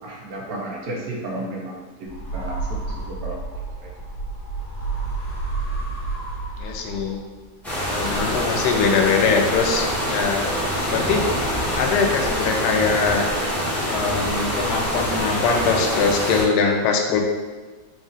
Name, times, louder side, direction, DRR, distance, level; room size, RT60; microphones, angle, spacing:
voice 1, 0.0-3.4 3.8-3.9, right 1 dB, 65° right, -2 dB, 1.2 m, -33 dB
sound 1, 2.1-7.4, right 3 dB, 60° left, 1.4 m, -30 dB
voice 2, 6.6-7.2 7.9-10.5 10.8-11.2 11.7-13.3 13.9-17.2, left 5 dB, 90° left, 2 dB, 1.2 m, -22 dB
sound 2, 7.6-16.4, equal, ahead, 0.7 m, -25 dB
4.1 x 2.4 x 3.9 m, 1.3 s
omnidirectional pair, 1.7 m